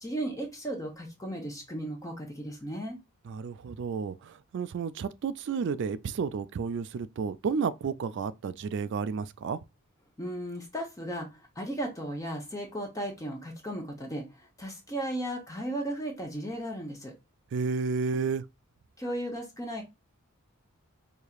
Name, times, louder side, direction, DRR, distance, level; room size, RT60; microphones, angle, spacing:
voice 1, 0.0-3.0 10.2-17.1 19.0-19.8, right 1 dB, 15° left, 0.8 m, -35 dB
voice 2, 3.3-9.6 17.5-18.4, right 5 dB, 55° right, 0.3 m, -31 dB
4.7 x 2.8 x 2.3 m
head